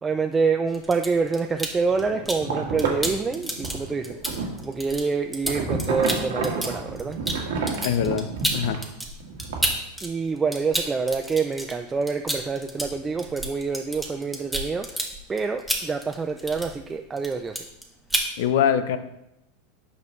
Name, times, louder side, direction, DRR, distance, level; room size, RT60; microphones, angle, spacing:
voice 1, 0.0-7.2 10.0-15.0 15.3-17.6, right 4 dB, 20° right, 5 dB, 0.4 m, -27 dB
sound 1, 0.7-2.5 2.8-10.1 10.4-16.9 17.2-17.8 18.1-18.3, right 1 dB, ahead, 1.4 m, -30 dB
sound 2, 1.8-4.6 5.4-8.8 9.2-9.7, right 4 dB, 80° right, 1.5 m, -30 dB
voice 2, 7.8-8.3 8.5-8.8 18.4-19.0, left 9 dB, 70° left, 12 dB, 0.6 m, -22 dB
8.1 x 5.2 x 3.1 m, 0.87 s
hypercardioid pair, 100°, 0 cm